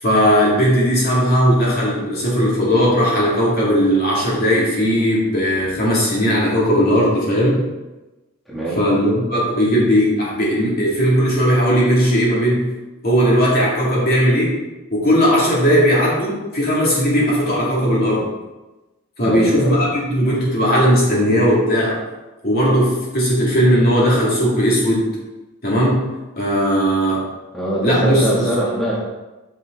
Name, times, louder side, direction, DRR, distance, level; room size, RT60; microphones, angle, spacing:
voice 1, 0.0-7.6 8.8-12.7 13.0-14.5 14.9-18.3 19.2-22.0 22.4-25.1 25.6-26.0 26.4-27.2 27.8-28.2, equal, 45° left, -6 dB, 2.6 m, -17 dB
voice 2, 8.5-8.8 19.2-19.8 27.5-29.0, right 1 dB, ahead, -8 dB, 1.4 m, -22 dB
8.7 x 5.3 x 3.9 m, 1.1 s
head